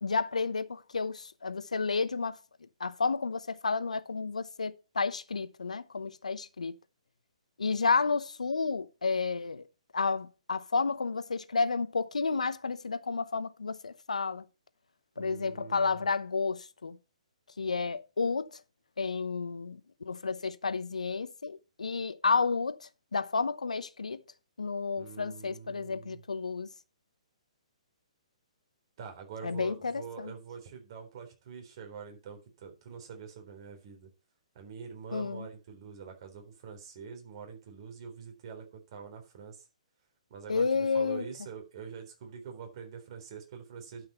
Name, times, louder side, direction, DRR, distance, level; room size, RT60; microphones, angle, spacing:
voice 1, 0.0-2.4 2.8-6.7 7.6-9.6 9.9-14.4 15.2-17.0 17.6-18.6 19.0-24.2 24.6-26.7 29.4-30.3 35.1-35.5 40.5-41.3, left 4 dB, 80° left, 0.9 m, -31 dB
voice 2, 15.2-16.1 25.0-26.2 29.0-34.1 34.5-39.7 40.3-44.1, right 6 dB, 45° right, 3.7 m, -45 dB
11.5 x 5.7 x 4.3 m
figure-of-eight pair, 125°, 4 cm